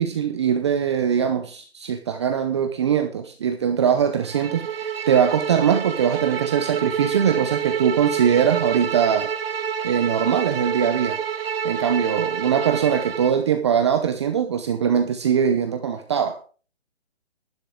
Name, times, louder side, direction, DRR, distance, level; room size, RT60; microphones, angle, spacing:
voice 1, 0.0-9.3 9.8-11.2 11.6-16.4, right 8 dB, 25° right, 0.7 m, -22 dB
Bowed string instrument, 4.3-13.4, right 7 dB, 60° right, 0.9 m, -28 dB
11.5 x 11.0 x 3.7 m
hypercardioid pair, 155°, 33 cm